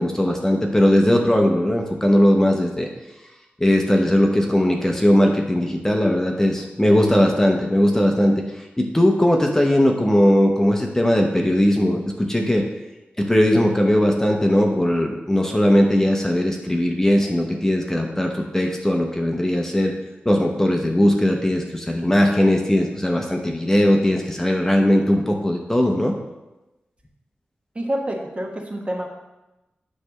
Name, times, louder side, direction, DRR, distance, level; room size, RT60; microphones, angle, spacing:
voice 1, 0.0-2.9 3.6-12.7 13.2-19.9 20.2-26.2, equal, 15° left, 1 dB, 0.9 m, -19 dB
voice 2, 27.7-29.1, right 1 dB, 35° right, 2 dB, 1.2 m, -27 dB
9.5 x 3.4 x 6.3 m, 1.0 s
wide cardioid pair, 95°, 4 cm